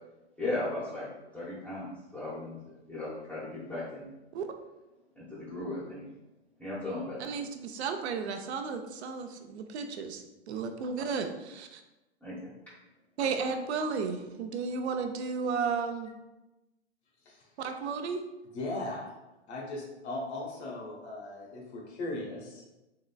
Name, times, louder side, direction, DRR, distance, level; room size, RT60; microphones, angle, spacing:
voice 1, 0.4-1.1 1.3-2.6 2.9-4.1 5.2-6.1 6.6-7.3 12.2-12.5, left 2 dB, 5° left, -11 dB, 0.6 m, -36 dB
voice 2, 7.2-11.8 13.2-16.1 17.6-18.2, right 5 dB, 70° right, 6 dB, 0.6 m, -33 dB
voice 3, 18.5-19.1 19.5-22.6, left 2 dB, 70° left, -1 dB, 1.1 m, -38 dB
3.8 x 3.1 x 2.2 m, 1.0 s
hypercardioid pair, 125°, 34 cm